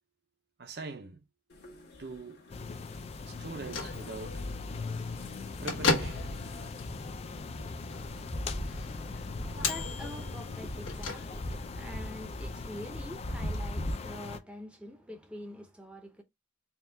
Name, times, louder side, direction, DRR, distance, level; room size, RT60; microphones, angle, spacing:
voice 1, 0.6-1.2 2.0-2.4 3.2-4.4 5.6-6.3, right 3 dB, 55° right, 0.6 m, -42 dB
sound 1, 1.5-13.9, equal, 55° left, 1.3 m, -42 dB
sound 2, 2.5-14.4, left 4 dB, 30° left, 0.3 m, -41 dB
Bell / Microwave oven, 3.4-11.7, left 3 dB, 75° left, 1.4 m, -37 dB
voice 2, 9.0-16.2, equal, 5° right, 0.6 m, -45 dB
4.4 x 2.3 x 3.3 m
head